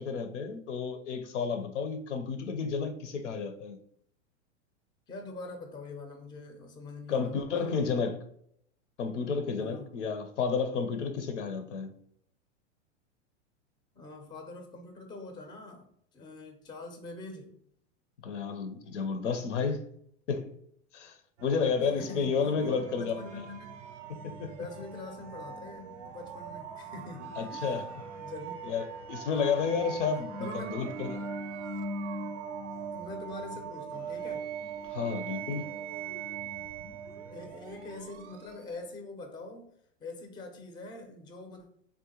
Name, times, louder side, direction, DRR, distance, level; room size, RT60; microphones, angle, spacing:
voice 1, 0.0-3.8 7.1-8.2 9.0-11.9 18.2-19.9 20.3-20.6 20.9-23.2 24.1-24.6 27.4-27.8 28.7-31.1 34.9-35.7, left 5 dB, 85° left, 0.6 m, -31 dB
voice 2, 5.1-8.0 9.6-10.0 13.9-17.6 22.0-23.8 24.5-27.7 28.2-28.7 29.3-29.6 30.4-31.2 32.9-34.4 37.3-39.7 40.0-41.7, left 2 dB, 15° left, 0.4 m, -44 dB
sound 1, 21.4-38.9, right 5 dB, 75° right, 0.5 m, -41 dB
3.7 x 2.1 x 2.8 m
hypercardioid pair, 110°, 36 cm